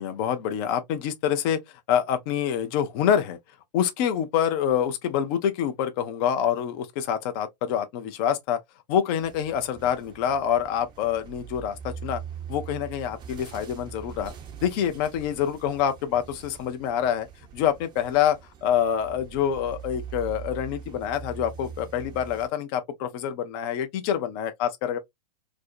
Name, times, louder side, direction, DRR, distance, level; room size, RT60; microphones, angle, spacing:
voice 1, 0.0-1.6 1.9-3.4 3.7-8.6 8.9-12.2 12.5-14.3 14.6-17.3 17.5-25.0, left 9 dB, 35° left, 0.4 m, -26 dB
sound 1, 9.2-22.5, right 7 dB, 20° right, 0.5 m, -42 dB
2.5 x 2.0 x 2.5 m
figure-of-eight pair, 105°, 21 cm